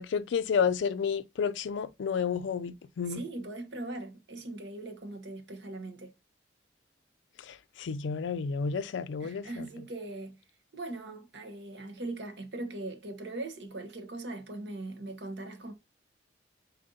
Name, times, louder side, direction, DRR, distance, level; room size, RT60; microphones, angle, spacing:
voice 1, 0.0-3.2 7.8-9.5, left 6 dB, 70° left, 0.3 m, -30 dB
voice 2, 3.0-6.1 9.2-10.4 10.7-15.7, right 2 dB, 65° right, 0.9 m, -40 dB
4.2 x 2.7 x 3.7 m
head